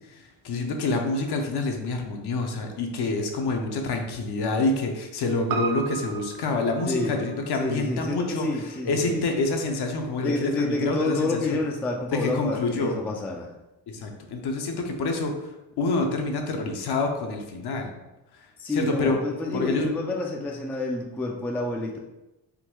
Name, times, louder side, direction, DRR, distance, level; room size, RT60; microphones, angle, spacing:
voice 1, 0.1-8.5 8.9-11.6 12.1-12.9 13.9-17.9 18.4-19.2 19.5-19.9, left 3 dB, 60° left, 3 dB, 0.7 m, -27 dB
Piano, 5.5-10.0 10.3-10.4, right 6 dB, 55° right, 0.5 m, -37 dB
voice 2, 6.9-7.3 7.6-9.2 10.2-13.5 18.6-22.0, left 2 dB, 5° left, 0 dB, 0.3 m, -29 dB
3.7 x 2.2 x 3.0 m, 0.98 s
cardioid pair, 75°, 45 cm